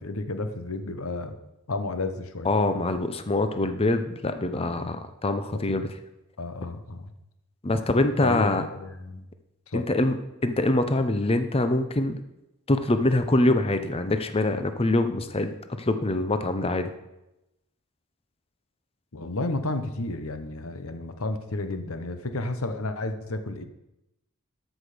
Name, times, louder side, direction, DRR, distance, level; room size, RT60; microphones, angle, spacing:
voice 1, 0.0-1.4 1.7-2.6 4.5-4.9 5.7-5.8 6.4-7.1 8.2-9.2 9.7-9.9 19.1-23.6, left 2 dB, 65° left, 9 dB, 1.0 m, -32 dB
voice 2, 2.4-5.9 7.6-8.7 9.7-12.2 12.7-16.9, left 2 dB, 25° left, 9 dB, 0.7 m, -24 dB
13.0 x 6.4 x 5.0 m, 0.91 s
head